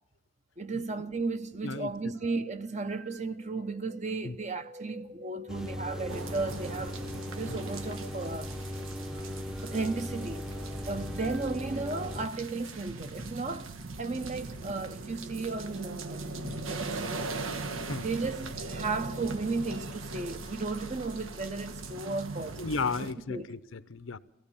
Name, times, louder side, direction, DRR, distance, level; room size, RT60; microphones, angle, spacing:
voice 1, 0.6-7.0 7.4-8.5 9.6-10.5 10.9-13.7 14.0-16.2 16.7-17.3 18.0-22.7 23.3-23.5, right 3 dB, 35° right, 0.9 m, -34 dB
sound 1, 2.1-12.1 12.8-13.1 15.1-15.4 16.3-16.8 17.3-17.6 18.4-18.9 19.4-20.4, right 2 dB, 60° right, 1.3 m, -52 dB
sound 2, 5.5-12.3, equal, 5° right, 0.8 m, -38 dB
sound 3, 6.1-23.1, right 3 dB, 85° right, 1.3 m, -40 dB
voice 2, 22.6-24.2, left 4 dB, 75° left, 0.8 m, -35 dB
23.0 x 16.0 x 7.1 m
head